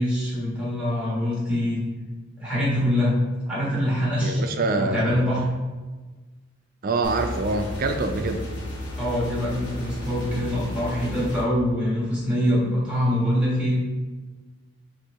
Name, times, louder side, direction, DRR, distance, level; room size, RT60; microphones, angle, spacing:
voice 1, 0.0-1.8 2.4-4.4 4.8-5.5 9.0-13.8, equal, 5° right, -7 dB, 1.4 m, -24 dB
voice 2, 4.2-5.2 6.8-8.5, right 3 dB, 45° right, 6 dB, 0.4 m, -25 dB
sound 1, 7.0-11.4, left 1 dB, 65° left, 0.9 m, -33 dB
4.4 x 2.6 x 3.5 m, 1.3 s
head